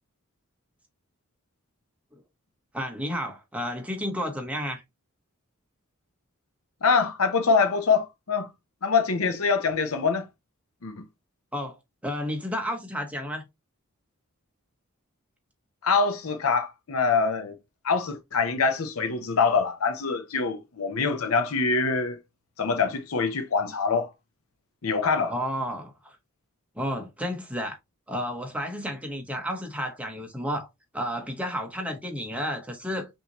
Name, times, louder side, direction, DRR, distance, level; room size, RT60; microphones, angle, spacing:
voice 1, 2.7-4.8 11.5-11.7 12.0-13.5 25.3-26.2 26.7-27.8 28.1-30.7 30.9-33.1, equal, 5° right, 1.0 m, -31 dB
voice 2, 6.8-8.5 8.8-10.3 10.8-11.0 15.8-17.6 17.8-22.2 22.6-24.1 24.8-25.3, left 5 dB, 75° left, 0.7 m, -24 dB
5.7 x 2.8 x 2.9 m
head